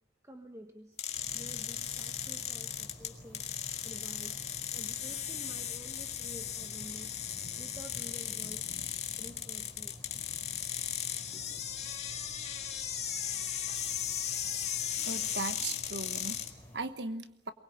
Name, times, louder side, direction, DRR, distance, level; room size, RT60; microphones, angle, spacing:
voice 1, 0.2-1.0 1.3-3.5 3.8-4.4 4.7-7.2 7.6-8.7 9.2-10.0 11.3-11.6, equal, 15° right, 5 dB, 1.4 m, -50 dB
sound 1, 1.0-16.5, left 9 dB, 35° left, 1.8 m, -37 dB
sound 2, 1.1-16.8, equal, 10° left, 4.9 m, -51 dB
voice 2, 15.0-17.5, right 3 dB, 65° right, 10 dB, 1.3 m, -38 dB
23.0 x 20.5 x 8.8 m, 0.81 s
head